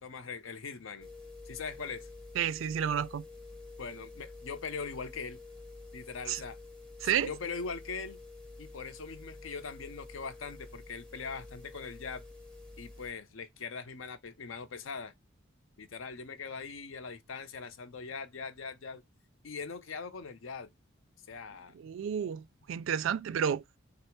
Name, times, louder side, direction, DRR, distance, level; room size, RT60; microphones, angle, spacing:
voice 1, 0.0-1.1 1.4-2.1 3.8-5.4 5.9-6.6 7.0-8.2 8.6-12.2 12.8-15.1 15.8-19.0 19.4-20.7 21.3-21.7, left 5 dB, 70° left, 0.6 m, -41 dB
sound 1, 1.0-13.1, left 3 dB, 5° left, 0.7 m, -49 dB
voice 2, 2.4-3.2 6.3-6.4 7.0-7.3 21.8-23.6, right 8 dB, 70° right, 0.3 m, -31 dB
4.2 x 2.0 x 4.4 m
head